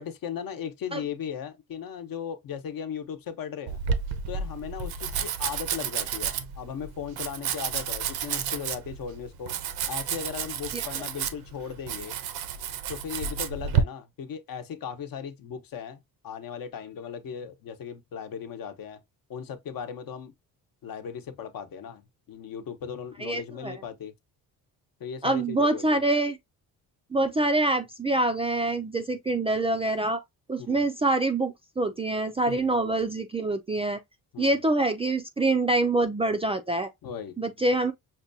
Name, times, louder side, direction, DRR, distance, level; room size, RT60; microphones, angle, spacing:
voice 1, 0.0-3.8 4.3-9.5 9.9-12.1 12.9-19.0 19.3-20.3 20.8-24.1 25.0-26.0 30.6-30.8 32.5-32.6 34.3-34.6 37.0-37.4, left 7 dB, 65° left, 0.9 m, -37 dB
Domestic sounds home sounds, 3.7-13.8, right 7 dB, 80° right, 0.7 m, -31 dB
voice 2, 23.2-23.7 25.2-26.4 27.1-30.2 30.5-34.0 34.4-36.9 37.4-37.9, right 2 dB, 15° right, 0.3 m, -25 dB
5.8 x 2.2 x 2.6 m
cardioid pair, 110°, 37 cm